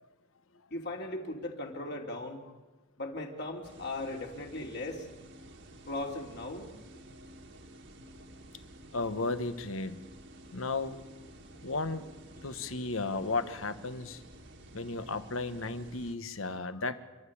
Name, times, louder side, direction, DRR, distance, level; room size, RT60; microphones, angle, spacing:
voice 1, 0.7-2.4 3.0-5.1 5.9-6.7, left 2 dB, 55° left, 1 dB, 3.1 m, -38 dB
sound 1, 3.6-16.2, right 1 dB, 60° right, 1.8 m, -52 dB
voice 2, 8.9-10.0 10.5-11.0 11.6-12.0 12.4-14.2 14.7-17.0, left 3 dB, 80° left, 11 dB, 1.2 m, -34 dB
28.0 x 12.5 x 8.6 m, 1.2 s
head